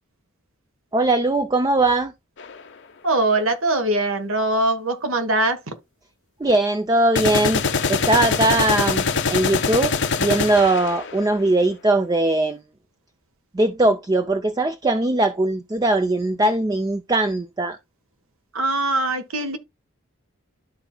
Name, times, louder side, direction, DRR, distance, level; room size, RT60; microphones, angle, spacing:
voice 1, 0.9-2.1 6.4-7.6 7.9-9.0 9.3-9.9 10.2-12.6 13.5-17.8, right 2 dB, 20° right, 0.4 m, -20 dB
sound 1, 2.4-2.5 7.2-11.3, left 5 dB, 60° left, 0.8 m, -23 dB
voice 2, 3.0-5.7 18.5-19.6, right 2 dB, 80° right, 1.4 m, -22 dB
12.5 x 4.4 x 2.2 m
head